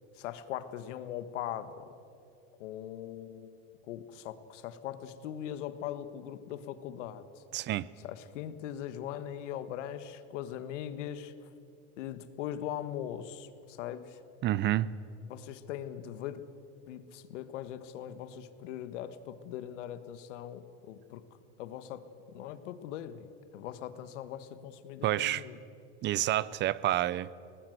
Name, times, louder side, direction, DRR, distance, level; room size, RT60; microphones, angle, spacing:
voice 1, 0.1-1.9 2.6-3.6 3.8-7.4 8.0-11.5 12.0-14.2 15.3-16.4 16.9-21.2 21.6-25.6, left 10 dB, 80° left, 1.6 m, -40 dB
voice 2, 7.5-7.9 14.4-14.9 25.0-25.4 26.0-27.3, right 14 dB, 30° right, 0.5 m, -29 dB
21.5 x 19.0 x 8.0 m
supercardioid pair, 135°, 36 cm